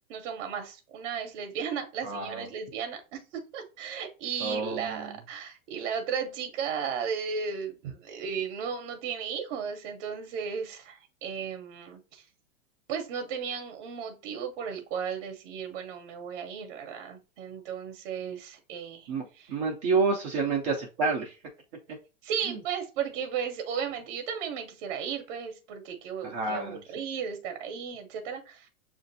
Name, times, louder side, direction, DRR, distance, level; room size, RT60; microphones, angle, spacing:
voice 1, 0.1-12.3 12.9-19.5 22.2-28.7, right 7 dB, 45° right, 0.7 m, -35 dB
voice 2, 2.0-2.4 4.4-5.1 19.1-21.3 22.5-22.6 26.2-26.8, right 4 dB, 25° right, 0.3 m, -29 dB
6.3 x 2.5 x 2.6 m
hypercardioid pair, 140°, 41 cm